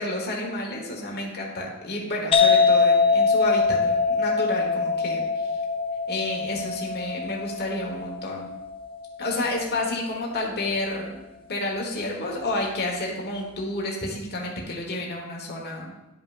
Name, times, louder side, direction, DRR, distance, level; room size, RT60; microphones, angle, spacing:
voice 1, 0.0-5.5 6.1-8.5 9.2-11.2 11.5-15.9, left 1 dB, 50° left, -1 dB, 1.3 m, -30 dB
sound 1, 2.3-9.8, left 4 dB, 25° left, 0.7 m, -23 dB
11.5 x 5.4 x 2.5 m, 0.98 s
head